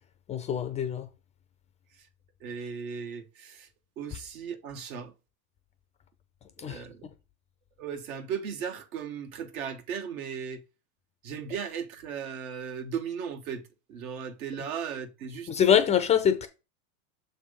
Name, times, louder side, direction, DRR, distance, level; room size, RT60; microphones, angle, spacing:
voice 1, 0.3-1.1 6.6-6.8 15.5-16.5, left 8 dB, 20° left, 0.3 m, -24 dB
voice 2, 2.4-3.7 4.0-5.1 6.6-7.0 7.8-10.6 11.2-13.6 13.9-15.5, right 7 dB, 80° right, 1.5 m, -36 dB
6.6 x 3.3 x 4.9 m
supercardioid pair, 130°, 42 cm